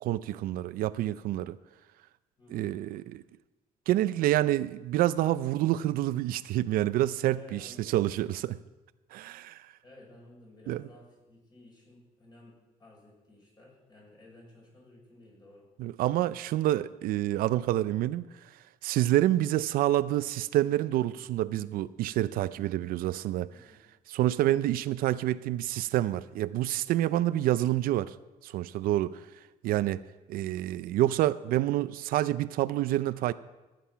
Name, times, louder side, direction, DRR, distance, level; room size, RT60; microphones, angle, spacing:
voice 1, 0.0-1.6 2.5-3.2 3.9-8.6 9.1-9.7 10.7-10.8 15.8-18.5 18.8-23.5 24.1-28.2 28.4-29.2 29.6-30.0 30.3-33.3, right 14 dB, 80° right, 0.5 m, -28 dB
voice 2, 2.4-2.8 7.3-8.0 9.8-15.6 23.5-23.8, left 2 dB, 30° left, 5.7 m, -54 dB
15.5 x 9.3 x 5.7 m
cardioid pair, 130°, 15 cm